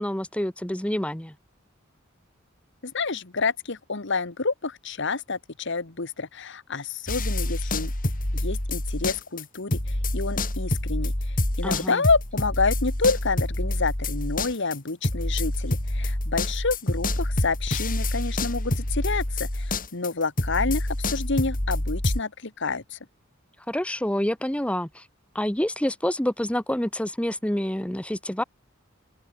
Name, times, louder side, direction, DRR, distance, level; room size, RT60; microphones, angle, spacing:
voice 1, 0.0-1.3 11.6-12.0 23.7-25.0 25.3-28.4, left 1 dB, 5° left, 1.0 m, -27 dB
voice 2, 2.8-7.9 8.3-23.0, left 4 dB, 60° left, 1.6 m, -28 dB
sound 1, 7.1-9.4 9.7-22.2, left 1 dB, 45° left, 3.0 m, -27 dB
open air
head